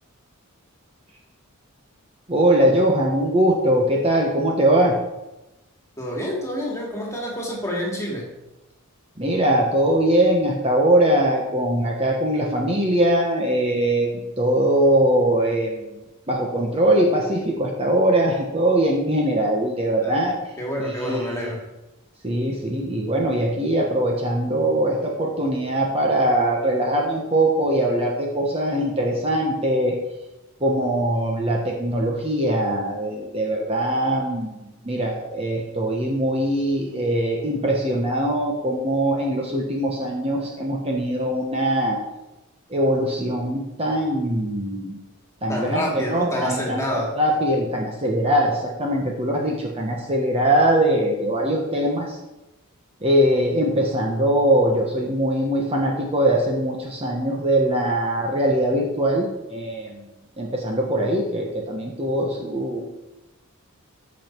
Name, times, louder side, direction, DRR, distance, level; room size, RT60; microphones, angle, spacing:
voice 1, 2.3-5.0 9.2-16.0 16.3-20.5 20.8-21.3 22.2-30.0 30.6-42.0 42.7-45.0 45.4-52.2 53.0-60.1 60.4-62.9, right 1 dB, 25° right, -1 dB, 1.2 m, -21 dB
voice 2, 6.0-8.2 20.0-20.2 20.6-21.6 45.5-47.1, equal, 15° left, -2 dB, 2.3 m, -28 dB
14.0 x 5.4 x 4.6 m, 0.99 s
head